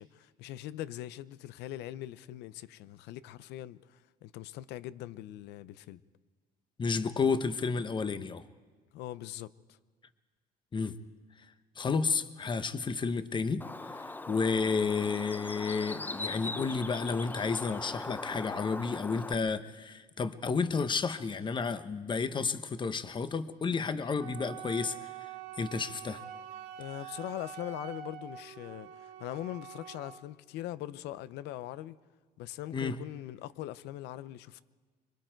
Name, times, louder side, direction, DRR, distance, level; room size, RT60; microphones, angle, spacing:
voice 1, 0.0-6.0 8.9-9.5 26.8-32.0 32.4-34.6, left 14 dB, 85° left, 0.6 m, -41 dB
voice 2, 6.8-8.4 10.7-11.0 11.8-13.7 13.9-26.2 32.7-33.0, left 5 dB, 30° left, 0.9 m, -31 dB
Bird, 13.6-19.4, left 2 dB, 10° left, 0.5 m, -40 dB
Wind instrument woodwind instrument, 24.2-30.2, right 9 dB, 85° right, 2.4 m, -45 dB
26.0 x 23.0 x 4.5 m
cardioid pair, 110°, 17 cm